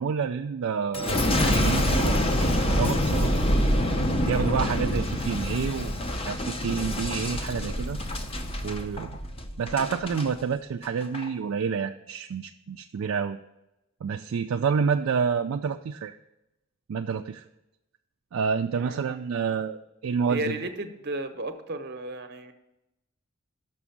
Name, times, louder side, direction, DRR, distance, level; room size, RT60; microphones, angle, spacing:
voice 1, 0.0-3.3 4.2-5.9 6.2-8.0 8.6-9.2 9.6-13.4 14.0-16.2 16.9-17.4 18.3-20.5, right 6 dB, 65° right, 5 dB, 0.3 m, -28 dB
Boom, 0.9-10.3 10.8-11.3, left 1 dB, 25° left, 0.6 m, -26 dB
voice 2, 18.8-19.5 20.3-22.5, right 1 dB, 50° right, 8 dB, 0.8 m, -34 dB
6.1 x 6.1 x 7.0 m, 0.91 s
head